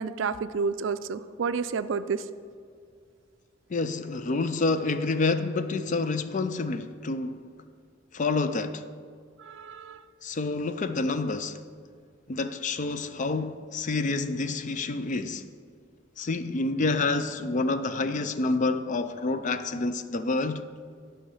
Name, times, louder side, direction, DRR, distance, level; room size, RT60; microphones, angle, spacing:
voice 1, 0.0-2.2 9.4-10.0, right 5 dB, 65° right, 0.4 m, -30 dB
voice 2, 3.7-7.5 8.1-8.9 10.2-11.7 12.3-15.5 16.2-20.7, left 3 dB, 40° left, 0.4 m, -28 dB
11.5 x 5.6 x 5.4 m
head